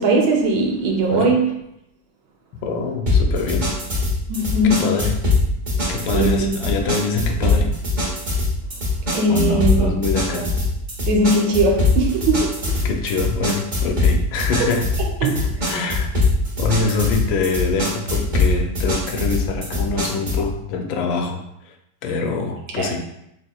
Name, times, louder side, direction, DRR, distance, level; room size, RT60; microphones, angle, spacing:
voice 1, 0.0-1.5 4.3-4.9 6.1-6.5 9.1-9.9 10.3-10.5 11.0-12.8 15.2-15.4 22.8-22.9, right 2 dB, 90° right, 1.6 m, -19 dB
voice 2, 2.6-3.7 4.6-5.1 5.9-7.7 9.3-10.5 12.8-14.9 15.2-15.3 15.6-16.1 16.6-21.7 22.0-23.0, left 4 dB, 80° left, 1.3 m, -24 dB
sound 1, 3.1-20.5, left 2 dB, 35° right, 0.8 m, -22 dB
4.6 x 3.5 x 2.2 m
omnidirectional pair, 2.1 m